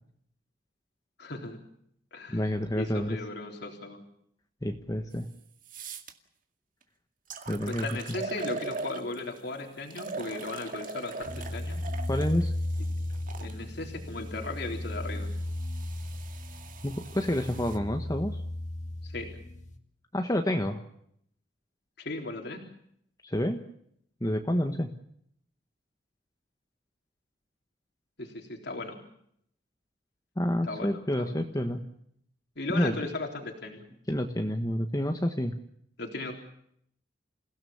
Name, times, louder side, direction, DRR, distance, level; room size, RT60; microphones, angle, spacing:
voice 1, 1.2-1.6 2.1-2.5 2.8-4.0 7.5-11.8 13.4-15.3 19.0-19.3 22.0-22.6 28.2-29.0 30.6-31.8 32.6-33.9 36.0-36.3, left 2 dB, 65° left, 3 dB, 3.7 m, -37 dB
voice 2, 2.3-3.2 4.6-5.3 7.5-8.2 12.1-12.5 16.8-18.4 20.1-20.8 23.2-23.6 24.2-24.9 30.4-31.8 32.7-33.0 34.1-35.5, left 1 dB, 20° left, 5 dB, 1.4 m, -29 dB
sound 1, 5.1-5.2 5.6-6.1 6.8-6.9 7.3-9.4 9.9-13.5 14.3-17.8, right 4 dB, 50° right, 2.1 m, -41 dB
sound 2, 11.2-19.8, left 1 dB, 40° left, 2.1 m, -35 dB
28.5 x 17.0 x 7.2 m, 0.70 s
head